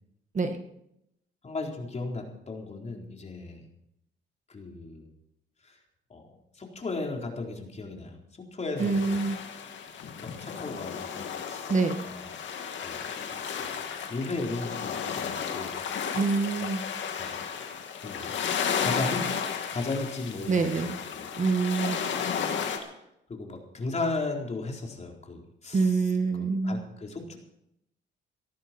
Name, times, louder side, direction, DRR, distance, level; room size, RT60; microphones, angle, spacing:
voice 1, 1.4-3.6 4.5-5.1 5.6-5.8 6.1-6.3 6.5-8.2 8.5-9.2 10.2-11.7 12.1-12.3 12.8-13.0 13.3-13.7 14.1-15.7 17.1-17.3 18.0-18.3 18.8-19.3 19.7-21.3 23.3-26.0 26.3-27.4, left 3 dB, 35° left, 1 dB, 4.2 m, -35 dB
sound 1, 8.8-22.8, left 7 dB, 70° left, 2.6 m, -33 dB
voice 2, 8.8-9.4 11.7-12.1 16.1-16.8 20.5-21.0 21.4-22.0 25.7-26.8, right 4 dB, 40° right, 6 dB, 1.9 m, -26 dB
18.0 x 14.0 x 4.5 m, 0.79 s
cardioid pair, 90°, 20 cm